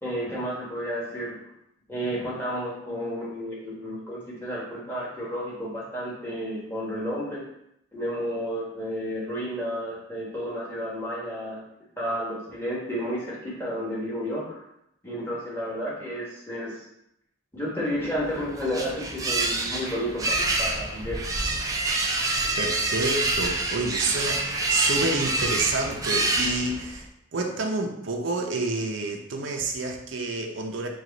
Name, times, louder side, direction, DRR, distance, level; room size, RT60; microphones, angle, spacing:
voice 1, 0.0-1.4 1.9-7.5 7.9-11.6 12.0-14.6 15.0-16.7 17.5-21.2, equal, 10° left, -7 dB, 1.2 m, -31 dB
sound 1, 18.1-27.0, right 2 dB, 20° right, 0.3 m, -27 dB
voice 2, 22.6-27.0 27.3-30.9, right 2 dB, 75° right, 2 dB, 0.6 m, -29 dB
4.7 x 2.4 x 3.9 m, 0.78 s
head